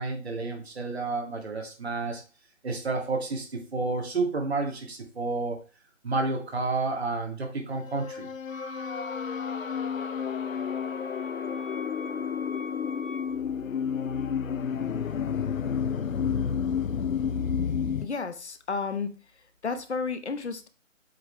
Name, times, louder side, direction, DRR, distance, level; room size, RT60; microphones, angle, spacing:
voice 1, 0.0-2.2 2.6-5.6 6.0-8.3, right 3 dB, 55° right, 2 dB, 2.2 m, -30 dB
sound 1, 7.8-18.1, left 7 dB, 90° left, 0.7 m, -30 dB
Wind instrument woodwind instrument, 8.5-13.4, left 1 dB, 35° right, 1.7 m, -42 dB
voice 2, 18.0-19.1 19.6-20.7, left 4 dB, 60° left, 9 dB, 1.0 m, -32 dB
7.6 x 3.9 x 4.4 m, 0.34 s
hypercardioid pair, 180°, 39 cm